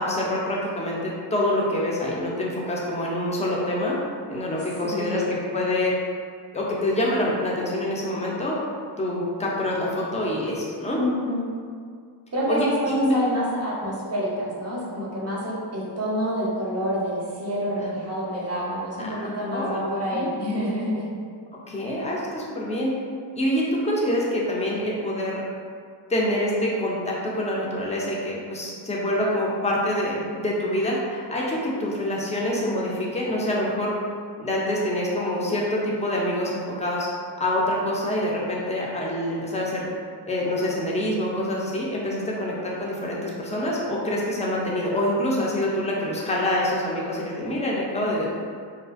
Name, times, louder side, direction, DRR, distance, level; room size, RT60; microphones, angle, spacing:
voice 1, 0.0-4.0 4.3-5.9 6.5-8.6 9.0-11.0 12.5-13.2 17.8-17.9 19.0-19.8 20.1-20.3 21.7-22.9 23.4-25.4 26.1-33.9 34.4-37.1 37.4-39.9 40.3-48.4, left 1 dB, 15° left, -4 dB, 0.3 m, -26 dB
voice 2, 4.8-5.3 10.9-11.5 12.3-21.1, equal, 35° right, -6 dB, 0.6 m, -27 dB
2.4 x 2.4 x 2.4 m, 2.1 s
wide cardioid pair, 115°, 46 cm